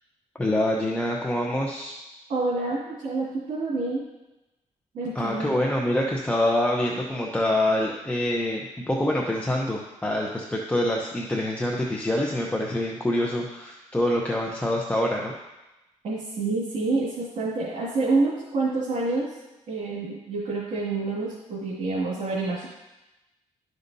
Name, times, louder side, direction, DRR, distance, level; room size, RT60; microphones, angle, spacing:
voice 1, 0.4-1.9 5.1-15.3, left 1 dB, 10° left, -2 dB, 0.8 m, -25 dB
voice 2, 2.3-4.0 4.9-5.5 16.0-19.4 19.7-22.7, right 3 dB, 80° right, -8 dB, 2.2 m, -27 dB
12.0 x 5.2 x 2.7 m, 1.0 s
cardioid pair, 95°, 13 cm